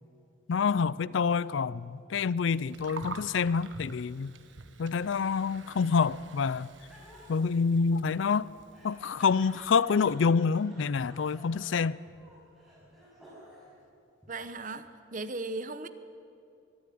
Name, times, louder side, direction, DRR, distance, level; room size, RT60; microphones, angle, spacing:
voice 1, 0.5-4.3 4.8-6.7 7.3-8.5 8.8-12.0, left 5 dB, 70° left, 0.4 m, -27 dB
Gurgling, 2.5-9.7, right 4 dB, 70° right, 1.4 m, -48 dB
Laughter, 5.4-13.8 14.2-14.9, equal, ahead, 6.2 m, -55 dB
voice 2, 14.3-14.8 15.1-15.9, right 3 dB, 40° right, 0.9 m, -36 dB
22.5 x 13.0 x 9.4 m
head